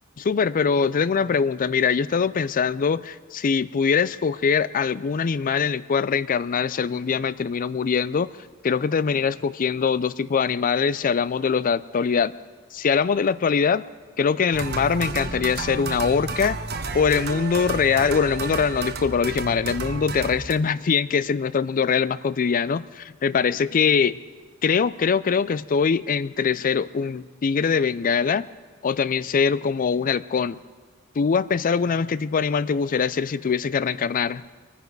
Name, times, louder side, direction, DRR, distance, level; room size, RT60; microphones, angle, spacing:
voice 1, 0.2-8.3 8.6-12.3 12.7-13.8 14.2-16.6 16.9-24.2 24.6-28.5 28.8-30.6 31.2-34.4, left 6 dB, 40° left, 18 dB, 0.4 m, -23 dB
sound 1, 14.5-20.5, right 3 dB, 50° right, 1.0 m, -31 dB
25.0 x 10.0 x 4.7 m, 1.4 s
head